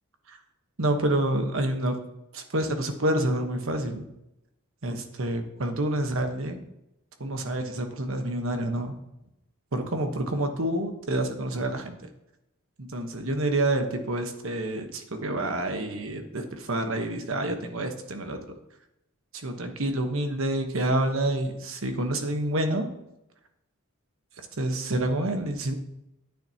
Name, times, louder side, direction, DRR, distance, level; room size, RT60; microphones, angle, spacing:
voice 1, 0.8-2.0 2.3-4.0 4.8-6.6 7.2-9.0 9.7-12.0 12.8-18.4 19.4-22.9 24.6-25.8, right 1 dB, 65° right, 5 dB, 1.2 m, -28 dB
10.5 x 9.1 x 2.9 m, 0.86 s
head